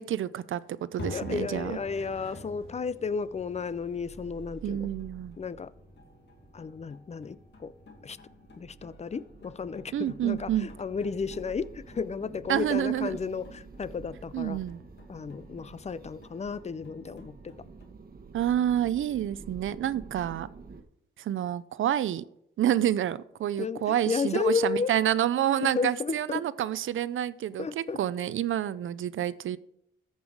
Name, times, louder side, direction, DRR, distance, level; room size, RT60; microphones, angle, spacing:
voice 1, 0.0-1.8 4.6-5.4 9.9-10.7 12.5-13.2 14.3-14.8 18.3-20.5 21.2-22.2 22.6-29.6, right 11 dB, 80° right, 0.5 m, -28 dB
sound 1, 1.0-17.9, left 3 dB, 60° left, 2.1 m, -49 dB
voice 2, 1.1-4.9 5.4-5.7 6.5-7.7 8.0-8.2 8.6-14.6 15.1-17.5 23.6-24.9 25.6-26.5 27.6-28.0, left 5 dB, 35° left, 0.5 m, -33 dB
sound 2, 1.5-20.8, right 4 dB, 45° right, 1.3 m, -50 dB
14.0 x 5.5 x 4.8 m
cardioid pair, 80°, 20 cm